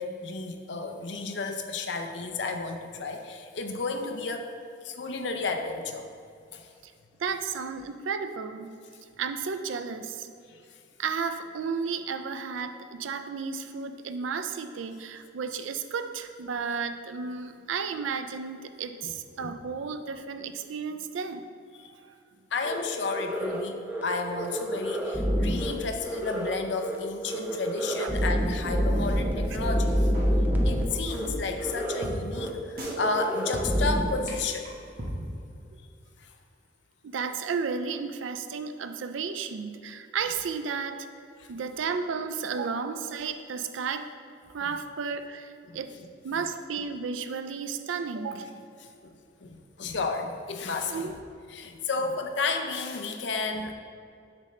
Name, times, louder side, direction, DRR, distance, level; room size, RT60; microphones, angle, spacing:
voice 1, 0.0-4.5 4.8-6.1 6.5-6.7 10.5-10.6 19.0-19.1 19.4-19.6 21.7-21.9 22.5-30.1 30.6-34.7 36.2-36.3 41.4-41.5 42.6-42.7 44.6-44.7 45.7-46.4 48.8-49.1 49.4-51.1 51.5-53.7, left 3 dB, 65° left, 5 dB, 0.6 m, -32 dB
voice 2, 7.2-8.7 9.2-10.3 11.0-21.4 21.8-22.2 28.0-28.2 29.5-29.6 37.0-41.1 41.5-44.1 44.5-46.0 46.2-48.6 50.9-51.1, right 5 dB, 85° right, 9 dB, 0.4 m, -33 dB
sound 1, 22.6-22.8 23.1-23.6 23.9-24.0 24.3-25.7 26.0-26.6 26.8-27.0 27.2-30.8 31.1-31.3 31.6-32.1 32.4-32.5 32.8-34.0, equal, 10° right, 0.5 m, -27 dB
sound 2, 29.9-30.3 30.5-30.9 31.3-31.4 31.6-31.7 32.0-32.1 32.4-32.5 32.8-33.3 33.5-33.9 34.3-34.4 34.7-34.8 35.0-35.1, equal, 50° right, 1.2 m, -36 dB
7.3 x 5.4 x 3.2 m, 2.4 s
head